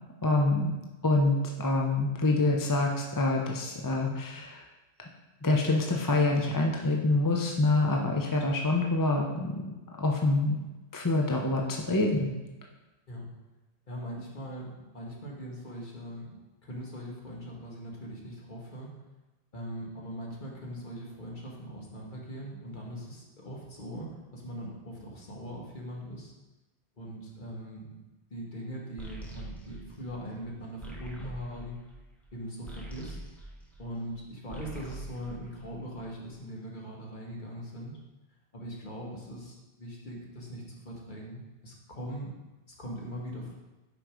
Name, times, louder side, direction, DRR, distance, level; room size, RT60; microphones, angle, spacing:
voice 1, 0.2-0.7 1.0-4.6 5.4-9.6 10.0-10.6 10.9-12.3, left 2 dB, 25° left, 0 dB, 0.6 m, -26 dB
voice 2, 13.9-19.0 19.5-26.3 27.0-28.0 28.3-31.8 32.3-33.2 33.8-38.0 38.5-42.3 42.7-43.6, equal, 45° left, -2 dB, 1.6 m, -41 dB
sound 1, 29.0-34.1 34.4-36.2, right 1 dB, ahead, 1.0 m, -44 dB
6.2 x 5.3 x 4.9 m, 1.1 s
omnidirectional pair, 1.1 m